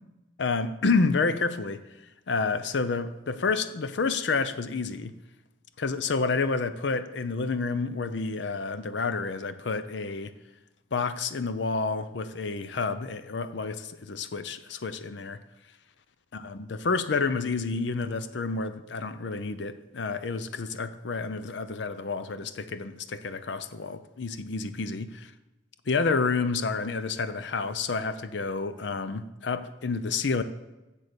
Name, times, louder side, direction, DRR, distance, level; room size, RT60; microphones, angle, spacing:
voice 1, 0.4-1.8 2.3-5.1 5.8-10.3 10.9-15.4 16.3-25.3 25.9-30.4, left 4 dB, 65° left, 0.5 m, -29 dB
7.9 x 7.4 x 6.7 m
head